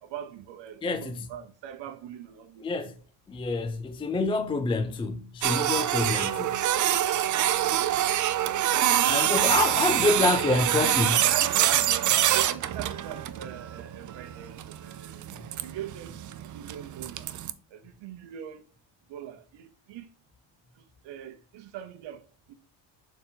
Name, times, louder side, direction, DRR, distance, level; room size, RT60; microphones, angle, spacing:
voice 1, 0.0-2.7 9.8-15.2 15.6-17.3 17.7-18.7 19.1-20.1 20.8-22.5, right 10 dB, 65° right, 0.9 m, -41 dB
voice 2, 0.8-1.3 2.6-2.9 3.3-6.6 9.0-11.1, left 3 dB, 15° left, 0.3 m, -27 dB
Printer, 5.4-17.5, right 12 dB, 40° right, 0.5 m, -25 dB
6.8 x 4.1 x 3.8 m
cardioid pair, 140°, 46 cm